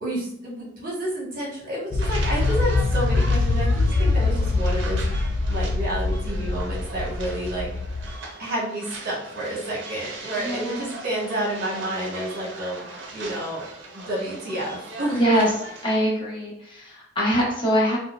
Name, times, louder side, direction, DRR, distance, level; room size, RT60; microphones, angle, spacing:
voice 1, 0.0-5.1 5.5-7.7 8.4-12.8 13.1-13.6 13.9-15.2, right 1 dB, 50° right, -5 dB, 1.1 m, -30 dB
sound 1, 1.9-8.2, left 3 dB, 60° left, 0.3 m, -23 dB
sound 2, 2.0-16.0, right 2 dB, 75° right, 0.6 m, -39 dB
voice 2, 10.4-10.9 15.1-15.5 15.8-18.0, equal, 25° left, -5 dB, 0.9 m, -23 dB
4.2 x 2.1 x 2.3 m, 0.71 s
head